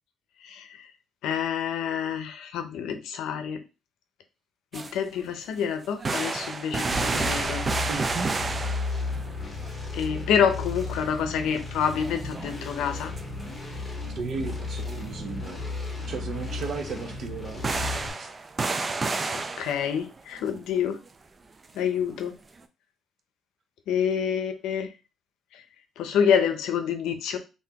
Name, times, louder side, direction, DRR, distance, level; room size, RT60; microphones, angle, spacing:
voice 1, 0.4-0.9 1.2-3.6 4.7-7.7 9.9-13.1 19.3-21.0 21.7-22.3 23.9-24.9 25.5-25.6 26.0-27.4, left 7 dB, 90° left, 8 dB, 0.6 m, -27 dB
sound 1, 4.7-4.9 5.2-5.3 5.8-9.3 9.6-9.7 10.0-10.1 10.8-11.0 11.2-11.5 11.8-13.2 14.4-14.5 14.9-15.0 16.4-16.6 17.3-17.4 17.6-20.5, right 3 dB, 30° right, 0.4 m, -30 dB
sound 2, 6.9-18.1, left 3 dB, 20° left, 1.4 m, -34 dB
voice 2, 7.9-8.3 14.1-15.6 16.1-18.3, right 4 dB, 60° right, 5 dB, 0.8 m, -35 dB
3.5 x 2.7 x 2.8 m, 0.29 s
cardioid pair, 90°, 0 cm